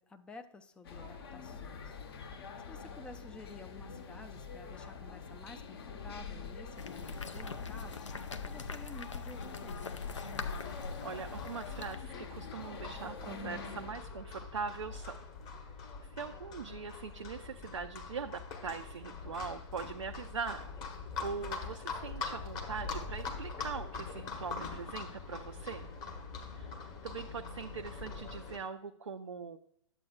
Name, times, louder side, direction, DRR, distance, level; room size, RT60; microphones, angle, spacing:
voice 1, 0.0-2.0 2.7-8.1 8.4-10.3, left 3 dB, 5° left, 7 dB, 0.4 m, -52 dB
sound 1, 0.8-13.9, left 5 dB, 50° left, 1.1 m, -45 dB
sound 2, 6.8-12.0, left 4 dB, 70° left, 0.7 m, -42 dB
Livestock farm animals working animals, 10.5-28.6, left 4 dB, 25° left, 1.2 m, -43 dB
voice 2, 11.0-15.2 16.0-20.7 21.2-25.9 26.5-26.8 27.0-29.6, right 5 dB, 70° right, 5 dB, 0.5 m, -41 dB
11.0 x 7.5 x 2.4 m, 0.68 s
figure-of-eight pair, 115°, 16 cm